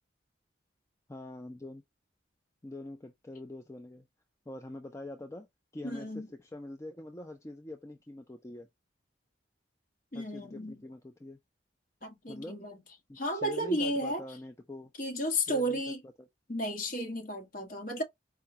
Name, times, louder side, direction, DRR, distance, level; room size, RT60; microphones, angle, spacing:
voice 1, 1.1-1.8 2.6-4.1 4.5-5.5 5.7-8.7 10.1-11.4 12.3-12.6 13.1-14.9 15.5-16.3, left 2 dB, 15° left, 0.4 m, -44 dB
voice 2, 5.8-6.3 10.1-10.8 12.0-12.8 13.1-14.2 15.0-16.0 16.5-18.0, equal, 45° left, 1.4 m, -33 dB
4.7 x 2.2 x 2.8 m
head